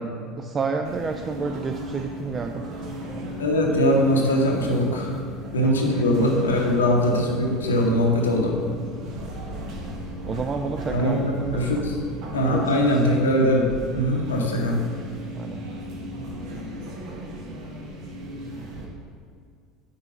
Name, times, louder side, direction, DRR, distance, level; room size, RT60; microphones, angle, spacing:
voice 1, 0.4-2.7 4.9-5.0 5.6-5.8 6.2-6.3 10.3-11.8 12.5-12.7 15.4-15.7, right 4 dB, 30° right, 5 dB, 0.3 m, -30 dB
sound 1, 0.8-18.9, equal, 60° right, 1.1 m, -36 dB
voice 2, 3.4-5.1 5.5-8.6 10.9-11.2 11.5-12.0 12.3-14.8, equal, 90° left, 0 dB, 0.8 m, -21 dB
5.4 x 4.3 x 4.2 m, 2.2 s
hypercardioid pair, 75°, 0 cm